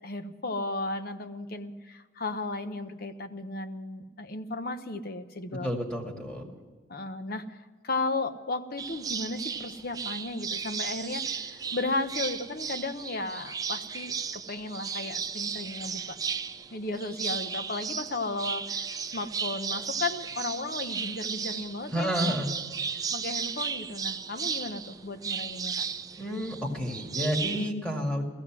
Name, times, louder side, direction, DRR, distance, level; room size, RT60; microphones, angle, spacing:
voice 1, 0.0-5.7 6.9-7.6 7.8-16.2 16.7-22.4 23.1-25.9, left 2 dB, 50° left, 9 dB, 1.0 m, -35 dB
voice 2, 5.5-6.5 21.9-22.5 26.2-28.2, equal, 5° left, 1 dB, 2.2 m, -30 dB
sound 1, 8.8-27.7, right 6 dB, 20° right, 0.5 m, -35 dB
15.5 x 15.0 x 6.1 m, 1.4 s
head